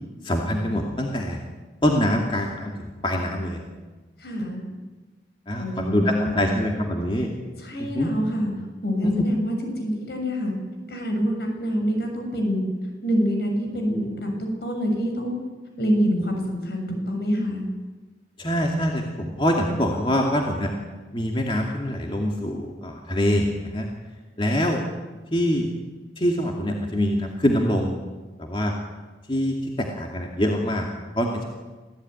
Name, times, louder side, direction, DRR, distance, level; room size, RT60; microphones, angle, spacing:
voice 1, 0.2-1.4 1.8-3.6 5.5-7.3 7.9-8.1 9.0-9.2 18.4-20.7 21.1-23.9 24.4-24.8 25.3-25.7 26.2-27.9 28.4-28.7 29.3-30.9 31.2-31.4, equal, 30° left, 0 dB, 2.4 m, -24 dB
voice 2, 4.2-4.6 5.6-6.5 7.6-8.5 8.8-10.5 10.9-12.6 13.0-15.4 15.8-17.6, equal, 65° left, 3 dB, 6.8 m, -26 dB
26.0 x 16.5 x 9.6 m, 1.3 s
head